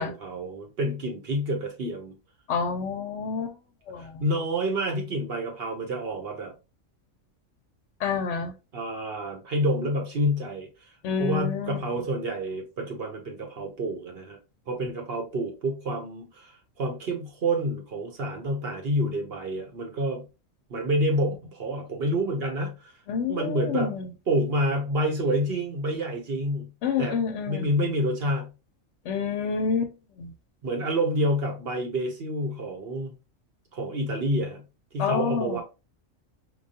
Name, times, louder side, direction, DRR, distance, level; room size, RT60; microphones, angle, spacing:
voice 1, 0.0-2.1 4.0-6.5 8.7-10.7 11.2-14.4 14.7-16.5 16.8-20.2 20.7-22.9 23.3-24.0 24.3-26.7 27.0-27.2 27.5-28.5 30.6-33.1 33.7-34.6 34.9-35.6, right 1 dB, 55° right, 1.0 m, -28 dB
voice 2, 2.5-3.6 3.9-4.2 8.0-8.5 11.0-11.8 23.1-24.1 26.8-27.7 29.0-30.3 35.0-35.6, left 6 dB, 65° left, 0.8 m, -28 dB
4.6 x 2.2 x 2.7 m
omnidirectional pair, 1.4 m